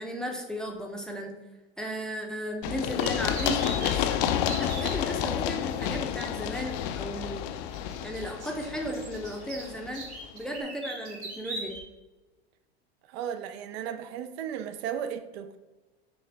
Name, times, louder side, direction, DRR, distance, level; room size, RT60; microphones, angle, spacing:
voice 1, 0.0-1.3 1.8-4.2 4.6-7.6 8.0-11.8, equal, ahead, 0.5 m, -35 dB
Run, 2.6-10.3, left 10 dB, 55° left, 0.4 m, -30 dB
sound 1, 3.0-4.9 6.4-6.5 7.7-11.8, right 2 dB, 85° right, 1.5 m, -40 dB
voice 2, 13.1-15.6, right 8 dB, 70° right, 0.5 m, -35 dB
6.1 x 2.1 x 3.2 m
hypercardioid pair, 95°, 32 cm